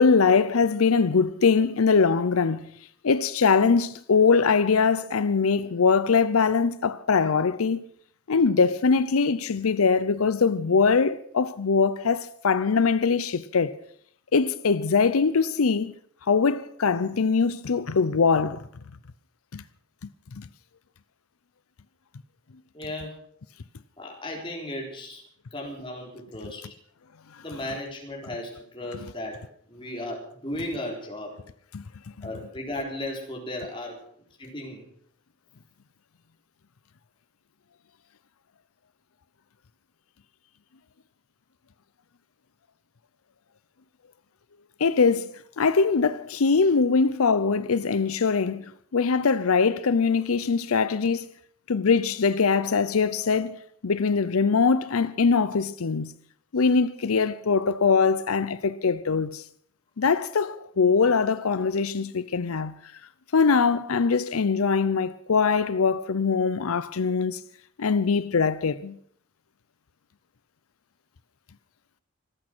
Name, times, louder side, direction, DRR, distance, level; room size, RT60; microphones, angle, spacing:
voice 1, 0.0-2.7 3.0-7.8 8.3-13.7 14.3-15.9 16.3-18.6 19.5-19.6 20.4-20.5 31.7-31.8 32.2-32.3 44.8-51.3 51.7-53.6 53.8-56.1 56.5-59.4 60.0-62.7 63.3-67.4 67.8-69.0, left 5 dB, 90° left, 0.6 m, -22 dB
voice 2, 22.7-23.2 24.0-25.2 25.5-26.7 27.4-29.4 29.7-31.3 32.2-34.0 34.4-34.9, left 1 dB, 25° left, 3.9 m, -35 dB
25.5 x 8.8 x 6.1 m
head